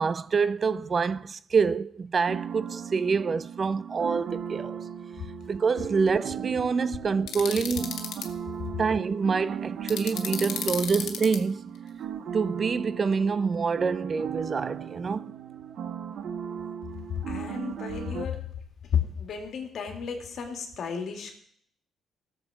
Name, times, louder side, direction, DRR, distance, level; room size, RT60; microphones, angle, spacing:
voice 1, 0.0-4.8 5.5-8.0 8.8-11.6 12.3-15.3, right 5 dB, 40° right, 0.4 m, -26 dB
sound 1, 2.3-18.2, right 8 dB, 70° right, 0.8 m, -37 dB
sound 2, 7.3-8.3 9.9-11.4, left 9 dB, 80° left, 1.2 m, -33 dB
voice 2, 17.3-18.4 19.2-21.4, left 6 dB, 60° left, 2.2 m, -35 dB
16.5 x 7.2 x 4.9 m
cardioid pair, 90°, 0 cm